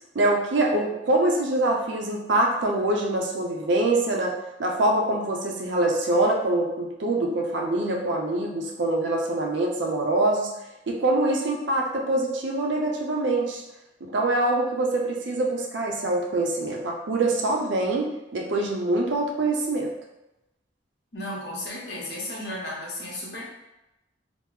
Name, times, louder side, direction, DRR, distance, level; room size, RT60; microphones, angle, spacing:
voice 1, 0.1-4.3 4.6-10.5 10.9-13.6 14.0-19.9, right 2 dB, 75° right, 0 dB, 0.5 m, -24 dB
voice 2, 21.1-23.4, left 1 dB, 65° left, -4 dB, 0.9 m, -34 dB
3.4 x 2.0 x 3.1 m, 0.93 s
head